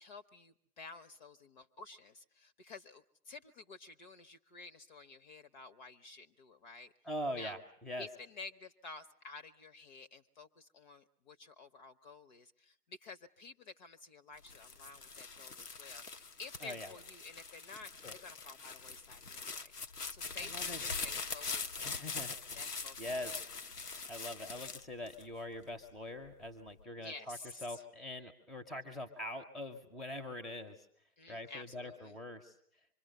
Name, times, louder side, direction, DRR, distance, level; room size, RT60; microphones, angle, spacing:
voice 1, 0.0-6.9 7.3-7.6 8.0-17.9 18.2-19.7 20.1-23.3 27.0-27.8 31.2-32.2, left 3 dB, 30° left, 13 dB, 0.9 m, -52 dB
voice 2, 7.0-8.1 16.6-16.9 18.0-18.1 20.3-20.8 21.8-22.4 23.0-23.4 23.8-30.9 31.3-32.5, left 1 dB, ahead, 8 dB, 0.9 m, -43 dB
sound 1, 14.4-25.7 26.3-26.8, left 4 dB, 85° left, 1.2 m, -43 dB
25.5 x 23.0 x 6.7 m, 0.66 s
figure-of-eight pair, 130°, 45 cm